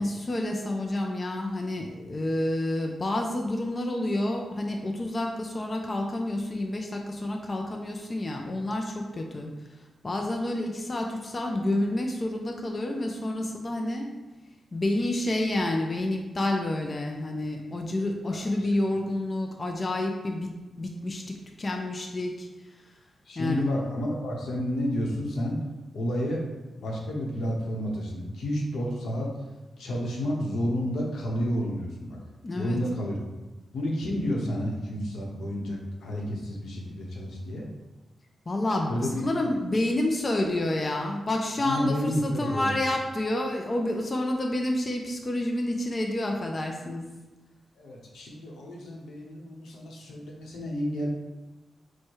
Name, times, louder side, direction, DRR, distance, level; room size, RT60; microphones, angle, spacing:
voice 1, 0.0-9.5 10.0-14.1 14.7-20.5 20.8-22.5 23.4-23.6 32.4-32.8 38.5-38.9 39.2-47.1, left 1 dB, 30° left, 2 dB, 0.4 m, -29 dB
voice 2, 18.3-18.7 23.3-25.6 25.9-26.4 26.8-29.3 29.8-32.2 32.6-33.2 33.7-37.7 38.9-39.2 41.6-42.7 47.8-51.1, equal, 90° left, -1 dB, 0.9 m, -30 dB
4.6 x 2.2 x 4.5 m, 1.1 s
wide cardioid pair, 130°, 0 cm